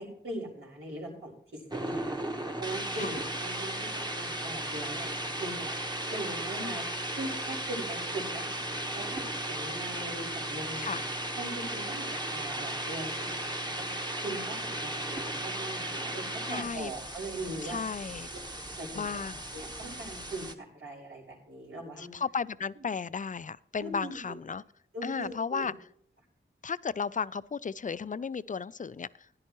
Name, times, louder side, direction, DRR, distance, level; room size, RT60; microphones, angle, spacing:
voice 1, 0.0-2.2 2.6-5.8 6.1-6.8 7.2-8.5 8.9-11.0 11.4-13.9 14.2-17.8 18.7-19.0 19.5-22.1 23.8-24.4 24.9-25.7, right 1 dB, 80° right, -3 dB, 4.4 m, -40 dB
sound 1, 1.7-20.5, right 1 dB, 20° right, 1.2 m, -36 dB
voice 2, 16.5-16.9 17.6-18.3 18.9-19.4 22.0-24.6 25.0-25.7 26.6-29.1, left 5 dB, 40° left, 18 dB, 0.4 m, -34 dB
15.5 x 10.5 x 3.0 m, 0.65 s
wide cardioid pair, 55°, 21 cm